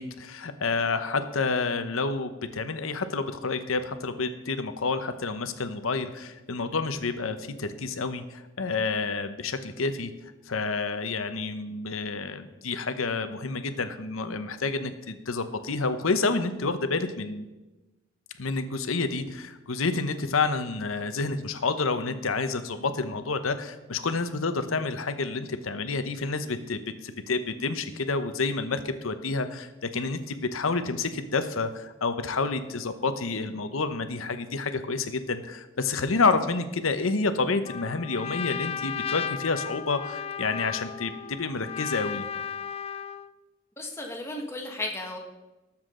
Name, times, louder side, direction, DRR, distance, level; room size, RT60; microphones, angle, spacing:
voice 1, 0.0-10.1 10.5-17.4 18.4-42.3, left 4 dB, 85° left, 10 dB, 0.9 m, -29 dB
Trumpet, 37.6-43.3, left 7 dB, 30° left, 0.3 m, -35 dB
voice 2, 43.8-45.2, left 2 dB, 15° left, 1 dB, 1.5 m, -34 dB
18.5 x 7.3 x 3.8 m, 1.1 s
head